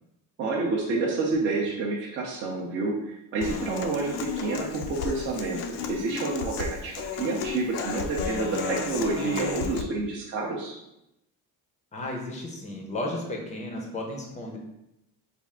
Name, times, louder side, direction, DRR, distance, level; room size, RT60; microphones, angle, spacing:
voice 1, 0.4-10.8, right 3 dB, 35° right, -3 dB, 0.5 m, -29 dB
Human voice / Acoustic guitar, 3.4-9.8, left 6 dB, 70° left, 0.5 m, -33 dB
voice 2, 11.9-14.6, left 1 dB, 20° left, 0 dB, 0.5 m, -34 dB
3.4 x 2.4 x 3.6 m, 0.86 s
cardioid pair, 165°, 35 cm